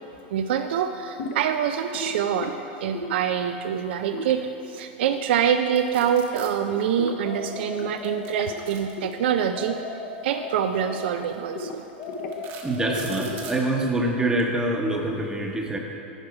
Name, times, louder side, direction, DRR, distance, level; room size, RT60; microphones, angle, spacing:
voice 1, 0.3-2.5 2.8-9.8 10.2-11.8, right 8 dB, 70° right, 7 dB, 0.3 m, -25 dB
sound 1, 1.2-1.5 1.9-2.5 2.9-3.3 4.1-5.6 5.9-6.1 6.4-7.9 8.2-8.6 9.0-9.1 9.4-9.9 10.1-11.3 11.6-12.4 12.8-14.6, left 2 dB, 65° left, 0.9 m, -36 dB
sound 2, 5.8-6.5 8.0-9.4 10.6-10.8 11.3-11.4 12.0-13.6, right 6 dB, 50° right, 1.2 m, -42 dB
sound 3, 7.2-9.0 9.5-11.4 12.0-13.9, left 4 dB, 35° left, 0.9 m, -37 dB
voice 2, 12.6-15.8, right 1 dB, 10° right, 1 dB, 0.9 m, -25 dB
10.5 x 4.7 x 4.8 m, 2.9 s
hypercardioid pair, 105°, 6 cm